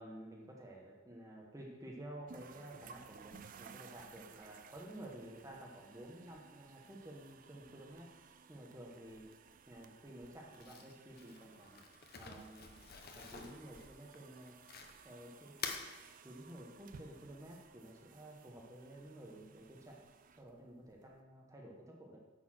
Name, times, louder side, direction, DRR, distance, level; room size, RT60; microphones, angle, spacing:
voice 1, 0.0-8.1 8.5-9.2 9.7-11.8 12.2-12.8 13.1-14.6 15.0-15.6 16.2-20.0 20.4-22.2, right 1 dB, 15° right, -1 dB, 1.0 m, -52 dB
sound 1, 2.3-21.2, right 6 dB, 40° right, 0.4 m, -59 dB
Crumpling crinkling, 10.5-15.1 15.5-15.9, left 6 dB, 45° left, 0.7 m, -47 dB
9.7 x 4.3 x 6.2 m, 1.2 s
head